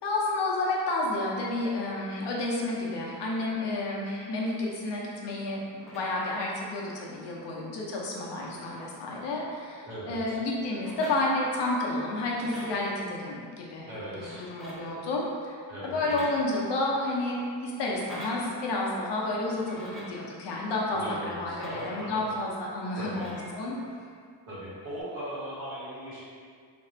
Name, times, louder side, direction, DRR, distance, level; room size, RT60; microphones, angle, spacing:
voice 1, 0.0-13.9 14.1-15.6 15.8-23.8, left 2 dB, 65° left, -3 dB, 0.8 m, -30 dB
sound 1, 5.8-6.4 7.6-7.7 7.9-9.9 10.7-11.8 12.1-12.9 14.0-15.0 15.8-16.9 17.8-18.5 19.5-20.2 21.3-22.3 23.0-23.9 24.8-25.0, equal, ahead, 0.6 m, -46 dB
voice 2, 9.8-10.4 13.8-14.4 15.7-16.2 20.9-22.2 22.9-23.3 24.5-26.2, right 1 dB, 50° right, -9 dB, 1.5 m, -39 dB
3.5 x 2.5 x 4.3 m, 2.1 s
cardioid pair, 160°, 45 cm